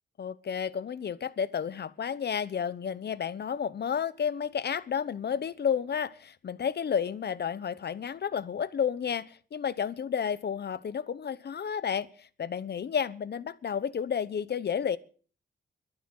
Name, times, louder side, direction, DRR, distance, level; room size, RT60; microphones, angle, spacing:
voice 1, 0.2-15.0, left 7 dB, 60° left, 1.0 m, -31 dB
12.0 x 10.0 x 9.0 m
wide cardioid pair, 165°, 19 cm